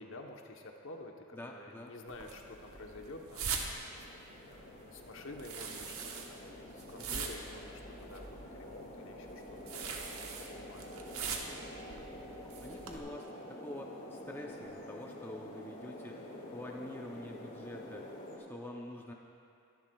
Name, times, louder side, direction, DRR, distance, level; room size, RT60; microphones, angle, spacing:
voice 1, 0.0-3.9 4.1-9.9 10.5-11.1 12.8-13.1, left 2 dB, 60° left, 2 dB, 1.0 m, -50 dB
voice 2, 1.3-1.9 7.0-7.2 11.4-11.6 12.6-19.1, left 1 dB, 10° left, -1 dB, 0.6 m, -47 dB
sound 1, 1.8-18.4, left 1 dB, 40° left, 2.2 m, -49 dB
sound 2, 2.1-13.0, right 5 dB, 75° right, 1.1 m, -43 dB
Wind instrument woodwind instrument, 10.1-14.3, right 3 dB, 60° right, 3.1 m, -58 dB
22.5 x 10.5 x 2.3 m, 2.5 s
head